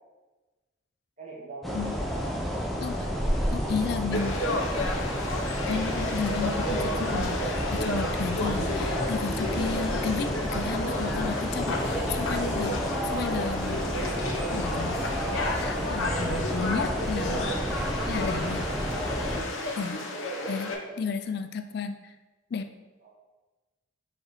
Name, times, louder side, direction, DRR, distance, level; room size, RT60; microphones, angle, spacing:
voice 1, 1.2-2.0 2.7-3.8 17.3-17.5 20.1-21.2 23.0-23.1, right 3 dB, 40° right, -5 dB, 1.8 m, -45 dB
sound 1, 1.6-19.4, equal, ahead, 0.6 m, -30 dB
voice 2, 3.5-4.5 5.7-13.8 14.1-15.0 15.6-17.5 18.0-18.7 19.8-20.1 20.5-20.7 21.0-22.1 22.5-22.7, left 5 dB, 55° left, 8 dB, 0.3 m, -33 dB
Conversation / Crowd, 4.1-20.7, left 1 dB, 85° left, 0.9 m, -32 dB
4.6 x 4.4 x 4.8 m, 1.2 s
head